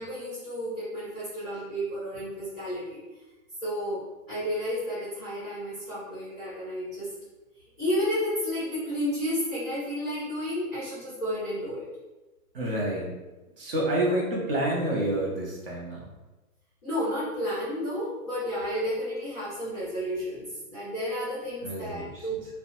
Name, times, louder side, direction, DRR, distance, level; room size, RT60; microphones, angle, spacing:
voice 1, 0.0-3.0 3.6-7.1 7.8-11.9 16.8-22.5, equal, ahead, -12 dB, 0.4 m, -32 dB
voice 2, 12.5-13.2 13.6-16.1 21.6-22.3, right 1 dB, 40° right, -3 dB, 0.6 m, -28 dB
2.6 x 2.1 x 2.6 m, 1.1 s
hypercardioid pair, 150°, 43 cm